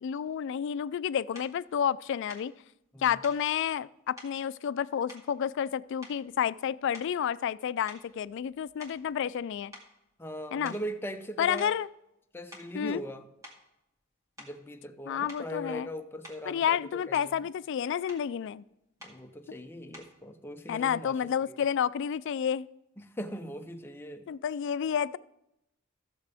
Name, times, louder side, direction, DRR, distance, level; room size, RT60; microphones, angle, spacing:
voice 1, 0.0-2.5 3.0-9.7 10.5-10.7 11.4-11.9 12.7-13.0 15.1-15.9 16.5-18.6 20.7-22.7 24.3-25.2, left 8 dB, 60° left, 0.3 m, -30 dB
sound 1, 1.3-1.6 2.3-2.5 3.2-3.5 4.2-4.4 5.1-5.7 6.0-6.4 6.9-7.3 7.9-9.4 9.7-9.9 10.6-10.9 11.6-11.8 12.3-12.8 13.4-13.6 14.4-14.6 15.3-15.5 16.2-16.5 16.9-17.4 18.1-18.3 19.0-19.2 19.9-20.2, left 1 dB, 15° right, 2.2 m, -50 dB
voice 2, 10.2-11.8 12.3-13.2 14.4-17.5 19.0-21.6 23.0-24.3, equal, 10° left, 0.6 m, -40 dB
15.0 x 6.8 x 3.4 m
head